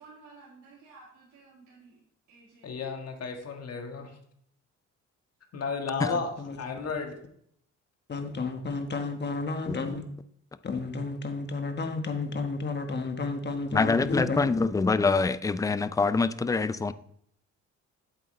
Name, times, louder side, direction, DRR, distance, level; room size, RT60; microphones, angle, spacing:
voice 1, 0.0-2.0 2.3-2.7, right 4 dB, 90° right, 2.5 m, -53 dB
voice 2, 2.6-4.1 5.5-7.1, left 4 dB, 55° left, 1.6 m, -33 dB
voice 3, 6.1-6.6 8.1-10.1 10.6-14.5, left 3 dB, 35° left, 1.3 m, -32 dB
voice 4, 13.7-16.9, left 4 dB, 10° left, 0.3 m, -25 dB
8.2 x 7.9 x 3.2 m
cardioid pair, 90°, 30 cm